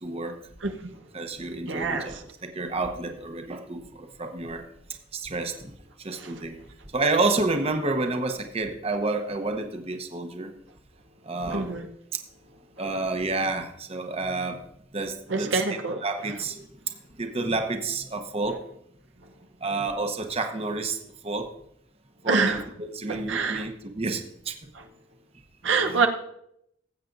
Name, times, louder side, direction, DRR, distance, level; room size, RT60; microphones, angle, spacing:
voice 1, 0.0-0.4 1.1-4.6 5.1-5.7 6.0-6.6 6.9-10.5 11.2-11.8 12.1-12.2 12.8-14.6 14.9-15.6 16.0-16.7 17.2-18.6 19.6-21.0 21.2-21.5 22.2-24.5, right 3 dB, 35° right, 6 dB, 0.9 m, -29 dB
voice 2, 1.7-2.2 6.2-6.3 11.5-11.9 15.3-16.0 22.3-22.6 23.1-23.6 25.6-26.1, right 4 dB, 85° right, 5 dB, 0.9 m, -25 dB
19.0 x 8.2 x 2.6 m, 0.76 s
head